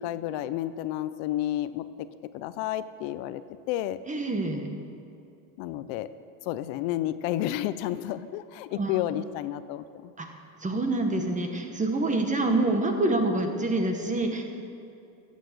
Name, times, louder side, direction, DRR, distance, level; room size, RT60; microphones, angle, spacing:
voice 1, 0.0-1.8 2.3-3.4 3.7-4.0 5.6-6.1 6.4-10.1, left 13 dB, 75° left, 14 dB, 0.6 m, -31 dB
voice 2, 4.1-4.6 8.7-8.9 10.2-10.3 10.6-14.4, right 2 dB, 15° right, 4 dB, 1.1 m, -26 dB
13.0 x 8.3 x 6.6 m, 2.6 s
cardioid pair, 140°, 46 cm